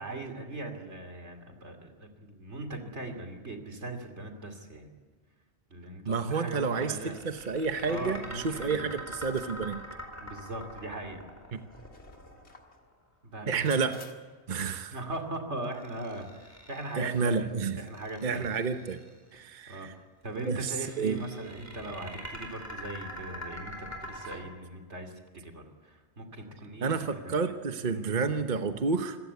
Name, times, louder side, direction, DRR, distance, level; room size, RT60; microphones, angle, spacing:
voice 1, 0.0-4.9 5.7-7.2 7.8-8.8 10.2-11.2 13.2-13.8 14.9-17.5 17.8-18.5 19.3-27.3 27.9-28.1, right 2 dB, 85° right, 5 dB, 3.0 m, -40 dB
voice 2, 6.1-7.0 7.2-9.8 11.5-11.6 13.5-14.0 14.5-15.0 17.0-17.9 18.2-19.0 19.3-19.9 20.4-20.7 21.0-21.2 26.8-29.2, right 5 dB, 45° right, 8 dB, 1.1 m, -30 dB
sound 1, 6.6-12.8 15.6-17.2 17.7-19.1 20.3-24.4, equal, 15° left, 4.4 m, -44 dB
sound 2, 9.2-9.8 10.5-10.6 11.6-12.8 13.6-14.1, left 4 dB, 75° left, 2.4 m, -52 dB
26.0 x 15.5 x 8.3 m, 1.4 s
omnidirectional pair, 1.1 m